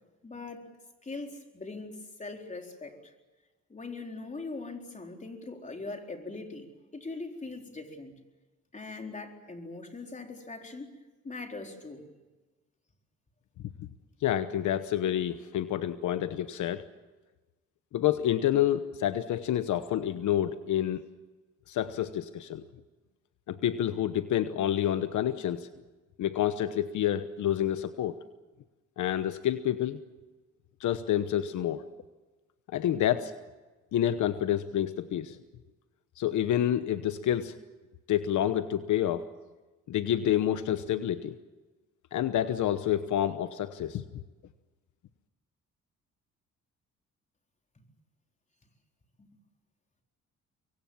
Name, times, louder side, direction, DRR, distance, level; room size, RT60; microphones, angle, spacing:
voice 1, 0.2-0.7 1.0-3.1 3.7-8.1 8.7-10.9 11.2-12.1 49.2-49.3, left 3 dB, 25° left, 3 dB, 4.1 m, -41 dB
voice 2, 14.2-16.8 17.9-21.0 21.7-22.6 23.5-25.7 26.2-28.2 29.0-30.0 30.8-31.8 32.7-33.4 33.9-35.4 36.2-37.5 38.1-39.3 39.9-41.4 42.1-44.0, left 11 dB, 75° left, 11 dB, 1.1 m, -28 dB
25.5 x 23.0 x 7.2 m, 1.2 s
cardioid pair, 90°, 30 cm